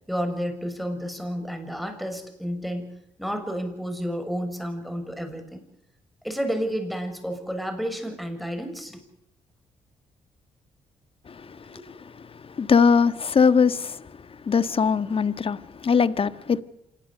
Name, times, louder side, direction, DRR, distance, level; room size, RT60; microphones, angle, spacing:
voice 1, 0.1-2.9 3.2-5.6 6.2-9.0 11.6-11.8, equal, ahead, 6.6 m, -31 dB
voice 2, 11.3-12.0 12.3-14.1 14.4-16.6, left 5 dB, 40° left, 1.5 m, -22 dB
27.0 x 20.5 x 6.7 m
hypercardioid pair, 50°, 14 cm